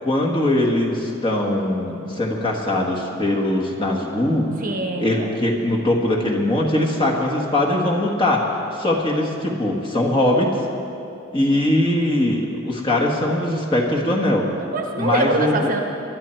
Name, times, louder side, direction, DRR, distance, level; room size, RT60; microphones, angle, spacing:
voice 1, 0.0-4.5 5.0-8.5 8.7-10.5 11.3-14.5 15.0-15.8, left 1 dB, 25° left, -1 dB, 1.6 m, -21 dB
voice 2, 4.6-5.0 14.5-15.8, right 2 dB, 40° right, 3 dB, 1.0 m, -23 dB
20.5 x 11.5 x 4.5 m, 2.8 s
head